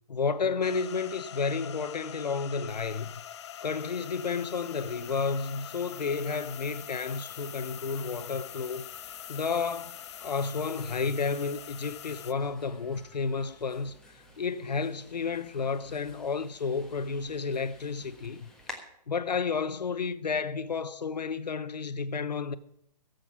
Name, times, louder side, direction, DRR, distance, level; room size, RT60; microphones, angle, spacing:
voice 1, 0.1-3.1 3.6-8.9 9.3-9.9 10.2-18.5 19.1-22.5, left 5 dB, 80° left, 0.8 m, -31 dB
sound 1, 0.6-12.3, left 10 dB, 40° left, 0.6 m, -44 dB
sound 2, 4.1-18.8, left 2 dB, 5° left, 1.4 m, -54 dB
Trumpet, 4.5-14.0, equal, 25° right, 5.4 m, -64 dB
16.0 x 8.0 x 5.9 m
figure-of-eight pair, 140°, 21 cm